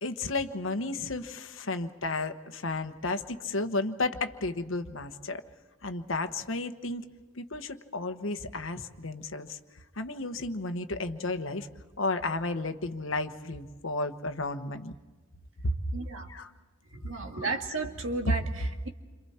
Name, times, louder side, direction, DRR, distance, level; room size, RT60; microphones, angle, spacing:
voice 1, 0.0-5.4 5.8-7.0 7.4-9.6 9.9-11.7 12.0-14.9 15.6-15.8 16.3-16.5 17.3-17.5 18.2-18.3, left 2 dB, 65° left, 8 dB, 1.2 m, -32 dB
voice 2, 15.9-16.3 16.9-18.9, right 3 dB, 70° right, 4 dB, 2.0 m, -34 dB
28.5 x 27.0 x 4.4 m, 1.3 s
head